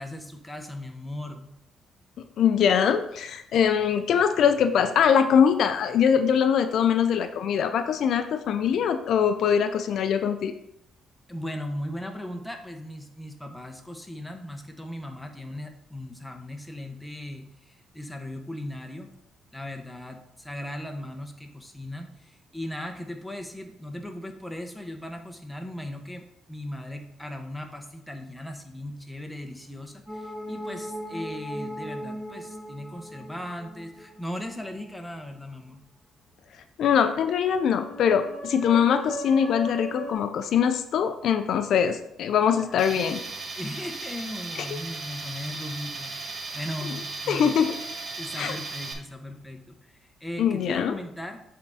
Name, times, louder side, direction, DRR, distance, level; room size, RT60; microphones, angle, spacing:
voice 1, 0.0-1.5 11.3-19.1 19.5-35.8 42.6-43.2 43.5-47.6 48.2-51.4, left 1 dB, 5° left, 4 dB, 1.0 m, -38 dB
voice 2, 2.4-10.5 36.8-43.2 47.3-47.7 48.4-48.6 50.4-50.9, left 8 dB, 70° left, 9 dB, 0.4 m, -22 dB
sound 1, 30.1-34.9 37.4-40.1, equal, 20° right, 2.6 m, -37 dB
Tools, 42.8-48.9, right 3 dB, 50° right, 1.2 m, -36 dB
7.7 x 3.6 x 4.1 m, 0.78 s
cardioid pair, 90°, 0 cm